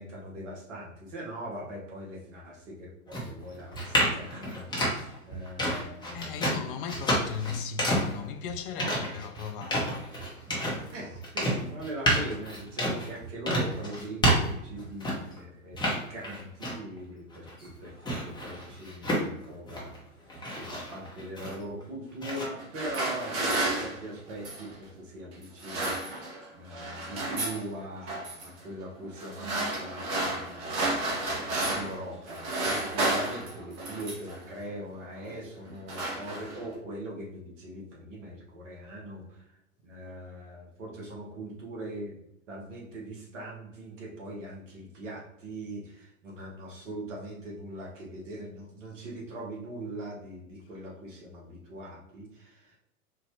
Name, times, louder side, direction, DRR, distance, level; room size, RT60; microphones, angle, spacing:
voice 1, 0.0-4.9 5.2-6.5 8.8-9.2 10.9-19.9 20.5-26.0 26.5-30.7 31.2-39.4 39.8-42.2 42.5-52.8, right 1 dB, 60° right, 1.4 m, -41 dB
sound 1, 3.1-15.4 15.7-17.0 17.3-20.0 20.3-21.8 22.2-22.4, equal, 10° left, 1.0 m, -30 dB
voice 2, 6.1-10.8, left 7 dB, 40° left, 0.5 m, -37 dB
sound 2, 22.5-24.7 25.4-26.5 26.7-27.6 28.1-28.5 29.2-32.0 32.3-34.4 35.1-35.4 35.7-36.7, right 2 dB, 40° right, 1.2 m, -32 dB
4.5 x 2.4 x 3.0 m
figure-of-eight pair, 100°, 43 cm